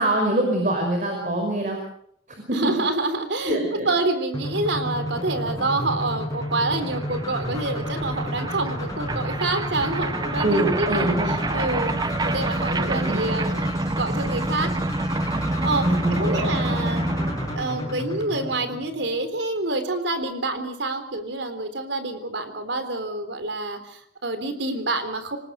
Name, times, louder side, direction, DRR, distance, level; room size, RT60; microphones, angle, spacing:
voice 1, 0.0-1.8 2.5-2.8 3.4-3.9 10.4-11.4 12.6-14.2 15.8-16.5, right 1 dB, 45° right, 3 dB, 5.4 m, -25 dB
voice 2, 2.5-3.6 3.9-14.7 15.4-17.0 17.6-25.4, right 2 dB, 85° right, 9 dB, 3.7 m, -27 dB
sound 1, 4.3-19.3, left 1 dB, 20° left, 6.4 m, -32 dB
sound 2, 6.5-6.6 6.7-17.6, right 2 dB, 25° right, 0.9 m, -27 dB
26.0 x 19.5 x 6.5 m, 0.67 s
head